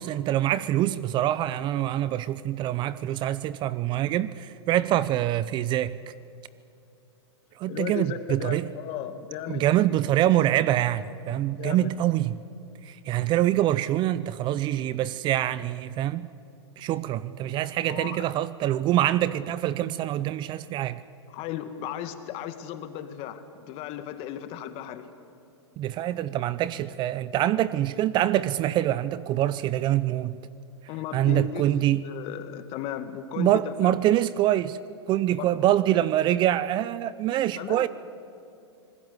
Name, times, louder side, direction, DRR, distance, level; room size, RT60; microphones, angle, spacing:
voice 1, 0.0-5.9 7.6-8.7 9.5-12.4 12.9-16.3 16.8-21.0 25.8-30.4 31.1-32.1 33.4-34.8 35.1-37.9, right 13 dB, 30° right, 0.6 m, -25 dB
voice 2, 7.7-9.6 11.6-11.9 17.9-18.3 21.3-25.1 30.9-31.8 32.0-34.0 35.3-35.5 37.6-37.9, left 10 dB, 40° left, 2.0 m, -35 dB
26.5 x 20.0 x 8.2 m
hypercardioid pair, 125°, 15 cm